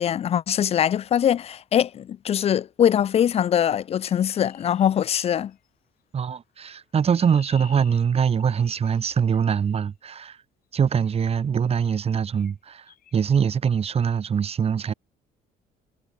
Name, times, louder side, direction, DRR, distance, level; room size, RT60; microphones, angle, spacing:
voice 1, 0.0-5.5, left 9 dB, 35° left, 0.4 m, -22 dB
Chirp tweet, 4.0-5.7 6.7-9.8 10.9-11.2 11.8-12.1 12.3-12.5 12.9-13.2, left 10 dB, 60° left, 7.3 m, -52 dB
voice 2, 6.1-10.4 10.7-12.8 13.1-14.9, right 7 dB, 35° right, 1.6 m, -23 dB
cardioid pair, 110°, 17 cm